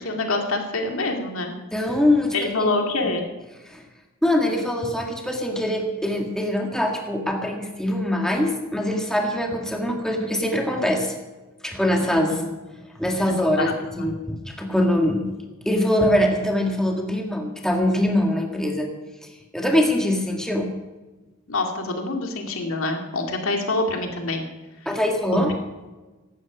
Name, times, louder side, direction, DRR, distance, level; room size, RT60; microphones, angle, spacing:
voice 1, 0.0-1.5 2.3-3.2 12.0-12.5 13.2-14.1 21.5-24.4, left 2 dB, 75° left, 3 dB, 2.3 m, -26 dB
voice 2, 1.7-2.3 2.6-2.7 3.7-3.8 4.2-11.1 11.6-12.4 12.9-15.3 15.6-18.9 19.5-20.7 24.9-25.5, left 1 dB, 5° left, 1 dB, 1.9 m, -23 dB
16.0 x 12.0 x 5.1 m, 1.2 s
head